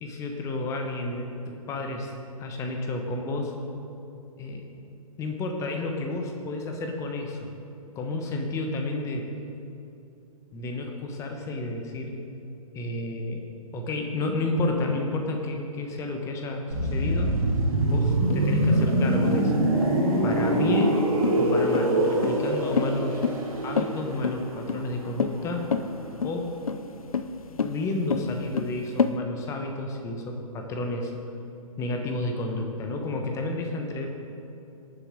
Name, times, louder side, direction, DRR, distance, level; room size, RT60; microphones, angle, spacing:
voice 1, 0.0-3.5 4.4-4.7 5.2-7.5 7.9-9.3 10.5-12.2 12.7-13.4 13.7-17.3 17.8-19.7 20.2-20.9 21.4-23.2 23.6-25.7 26.2-26.5 27.6-31.1 31.8-34.1, left 2 dB, 15° left, 3 dB, 1.0 m, -31 dB
sound 1, 16.7-26.4 26.6-26.9, right 1 dB, 70° right, 2.6 m, -25 dB
sound 2, 18.3-29.1, left 6 dB, 70° left, 0.6 m, -29 dB
18.0 x 7.2 x 3.8 m, 2.8 s
figure-of-eight pair, 125°, 19 cm